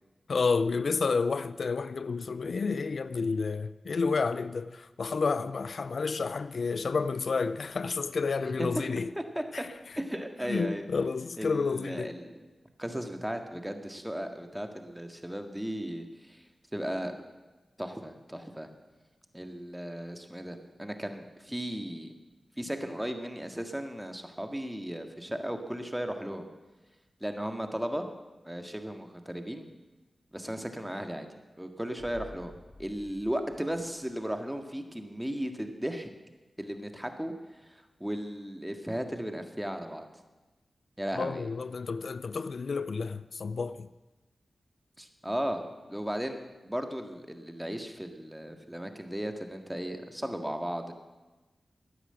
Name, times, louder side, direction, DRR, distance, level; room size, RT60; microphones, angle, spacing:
voice 1, 0.3-9.1 9.5-10.0 10.5-12.1 41.1-43.9, left 4 dB, 70° left, 0.4 m, -30 dB
voice 2, 10.0-10.9 11.4-12.5 12.8-16.4 16.7-17.1 17.8-18.7 19.3-22.1 22.6-26.5 27.2-28.1 28.5-29.7 30.3-31.3 31.6-32.5 32.8-36.1 36.6-37.3 37.7-40.1 41.0-41.5 45.0-45.6 45.9-50.9, equal, 5° right, 1.8 m, -36 dB
sound 1, 32.0-34.7 35.0-35.1, left 2 dB, 30° left, 1.8 m, -52 dB
14.5 x 9.9 x 8.0 m
cardioid pair, 50°, 0 cm